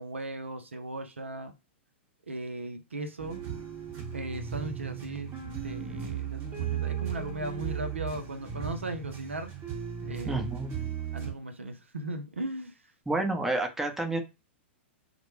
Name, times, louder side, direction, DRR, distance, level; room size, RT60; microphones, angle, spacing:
voice 1, 0.0-1.5 2.3-3.4 4.1-5.3 5.6-9.5 10.1-10.5 11.1-12.8, right 1 dB, 90° right, 0.5 m, -37 dB
sound 1, 3.2-11.3, right 9 dB, 30° right, 0.9 m, -36 dB
voice 2, 10.3-10.7 13.1-14.2, right 2 dB, 5° right, 0.6 m, -29 dB
2.1 x 2.0 x 3.0 m
hypercardioid pair, 110°, 7 cm